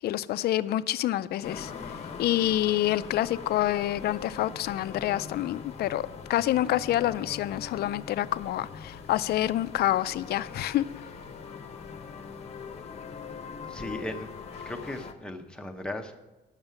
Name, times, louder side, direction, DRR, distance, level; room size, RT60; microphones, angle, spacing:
voice 1, 0.0-1.7 2.2-10.8, left 13 dB, 60° left, 16 dB, 0.4 m, -27 dB
sound 1, 1.4-15.1, left 5 dB, 35° left, 0.8 m, -42 dB
voice 2, 13.7-14.3 14.6-16.2, left 1 dB, 5° left, 4 dB, 0.7 m, -37 dB
8.8 x 6.5 x 8.0 m, 1.1 s
cardioid pair, 170°, 18 cm